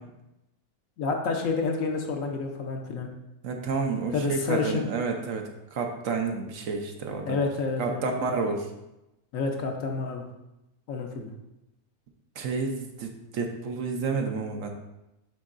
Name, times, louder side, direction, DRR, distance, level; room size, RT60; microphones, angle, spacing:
voice 1, 1.0-3.1 4.1-4.9 7.3-8.2 9.3-10.2 10.9-11.3, left 4 dB, 65° left, 2 dB, 1.1 m, -29 dB
voice 2, 3.4-7.4 7.8-8.7 12.4-14.7, right 4 dB, 65° right, 3 dB, 1.0 m, -30 dB
9.7 x 3.9 x 2.5 m, 0.92 s
omnidirectional pair, 1.6 m